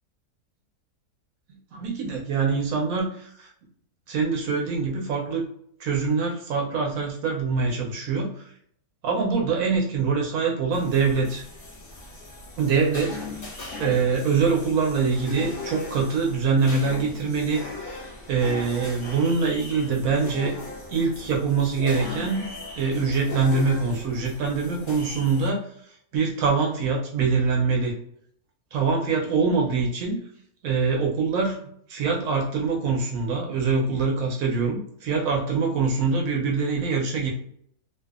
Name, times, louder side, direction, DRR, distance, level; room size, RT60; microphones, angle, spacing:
voice 1, 1.5-3.5 4.1-5.5 5.8-8.4 9.0-11.4 12.6-13.2 13.8-18.0 18.3-20.6 20.9-22.5 22.7-25.7 26.1-27.9 28.7-30.2 30.6-31.6 31.9-37.3, right 4 dB, 70° right, 0 dB, 0.9 m, -24 dB
sound 1, 10.7-25.5, left 3 dB, 45° left, 0.7 m, -38 dB
2.6 x 2.4 x 2.3 m, 0.66 s
omnidirectional pair, 1.6 m